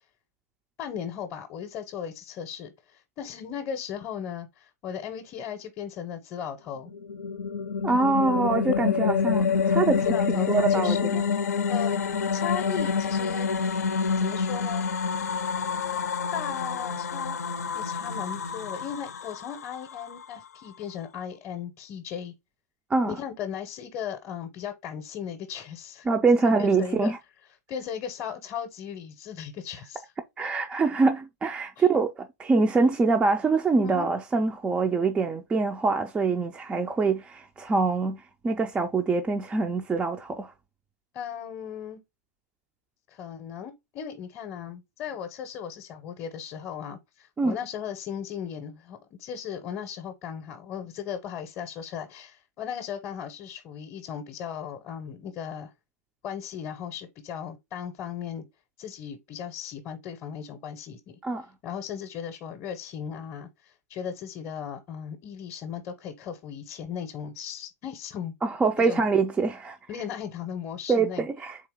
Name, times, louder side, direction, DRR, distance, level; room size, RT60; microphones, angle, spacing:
voice 1, 0.8-6.9 10.0-11.3 11.7-11.9 12.3-13.8 14.2-14.9 16.3-17.4 17.7-22.3 23.1-26.1 26.6-27.1 27.7-30.0 31.8-31.9 33.8-34.1 41.1-42.0 43.1-55.7 56.2-58.4 58.8-61.2 61.6-68.3 68.9-69.1 69.9-71.3, left 8 dB, 30° left, 0.7 m, -37 dB
sound 1, 6.9-20.2, left 6 dB, 90° left, 0.5 m, -27 dB
voice 2, 7.8-11.2 22.9-23.2 26.1-27.2 30.4-40.5 47.4-47.6 61.2-61.5 68.4-69.8 70.9-71.6, right 4 dB, 10° right, 0.3 m, -24 dB
3.7 x 2.8 x 3.6 m
hypercardioid pair, 130°, 8 cm